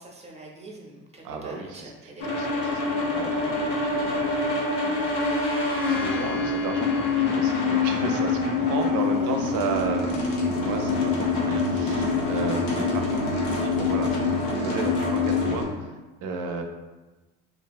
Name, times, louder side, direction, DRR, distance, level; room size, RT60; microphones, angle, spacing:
voice 1, 0.0-2.3 4.8-5.1 9.1-9.4 12.9-13.1, right 2 dB, 20° right, -1 dB, 0.6 m, -44 dB
voice 2, 1.2-4.6 5.8-15.9 16.2-16.6, right 4 dB, 60° right, 5 dB, 0.5 m, -34 dB
sound 1, 2.2-15.6, left 3 dB, 85° left, 0.6 m, -25 dB
sound 2, 4.7-12.2, left 2 dB, 35° left, 0.7 m, -41 dB
2.5 x 2.3 x 2.3 m, 1.2 s
hypercardioid pair, 60°, 35 cm